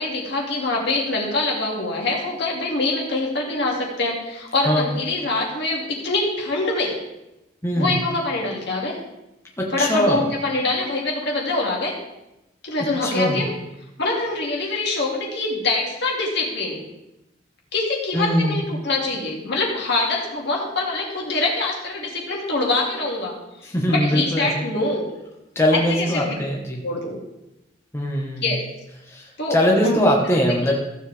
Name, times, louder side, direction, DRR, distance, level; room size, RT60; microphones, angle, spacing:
voice 1, 0.0-7.0 7.8-9.0 9.7-11.9 12.6-13.5 14.0-16.8 17.7-25.1 25.7-26.3 26.8-27.2 28.4-28.6 29.4-29.6 29.8-30.0, left 2 dB, 65° left, -2 dB, 2.4 m, -24 dB
voice 2, 7.6-8.0 9.6-10.2 13.0-13.4 18.1-18.6 23.6-24.6 25.5-26.8 27.9-28.5 29.1-30.8, equal, 15° left, -2 dB, 1.3 m, -21 dB
15.0 x 7.4 x 3.4 m, 0.93 s
head